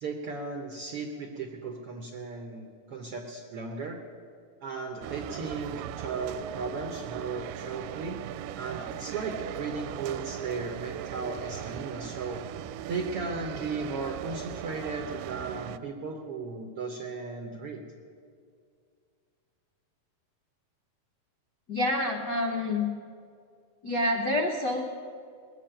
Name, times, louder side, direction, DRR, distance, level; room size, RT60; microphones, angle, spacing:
voice 1, 0.0-4.0 4.6-8.2 8.6-12.4 12.9-17.8, right 4 dB, 65° right, 2 dB, 1.4 m, -36 dB
sound 1, 5.0-15.8, right 11 dB, 85° right, 2.1 m, -39 dB
voice 2, 21.7-22.8 23.8-24.8, left 1 dB, 80° left, 0 dB, 0.9 m, -27 dB
20.5 x 7.4 x 8.9 m, 2.2 s
omnidirectional pair, 3.9 m